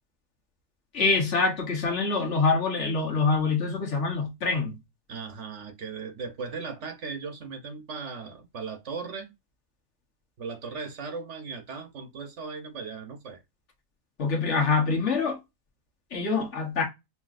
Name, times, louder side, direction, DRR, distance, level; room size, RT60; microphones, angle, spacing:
voice 1, 0.9-4.8 14.2-15.4 16.1-16.8, left 4 dB, 55° left, 1.4 m, -25 dB
voice 2, 5.1-9.3 10.4-13.4, right 5 dB, 60° right, 1.1 m, -37 dB
5.7 x 2.7 x 2.4 m
omnidirectional pair, 1.5 m